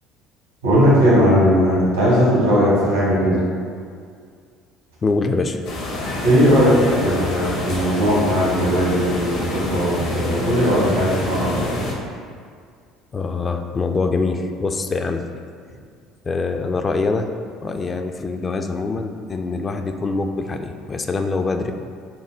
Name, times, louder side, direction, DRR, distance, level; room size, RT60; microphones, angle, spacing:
voice 1, 0.6-3.4 6.2-11.8, equal, 80° right, -7 dB, 1.5 m, -18 dB
voice 2, 5.0-5.6 13.1-15.3 16.2-17.3 17.6-21.7, left 3 dB, 30° left, 5 dB, 0.3 m, -24 dB
sound 1, 5.6-11.9, left 2 dB, 60° left, 0.7 m, -27 dB
5.9 x 2.1 x 3.5 m, 2.1 s
figure-of-eight pair, 60°, 0 cm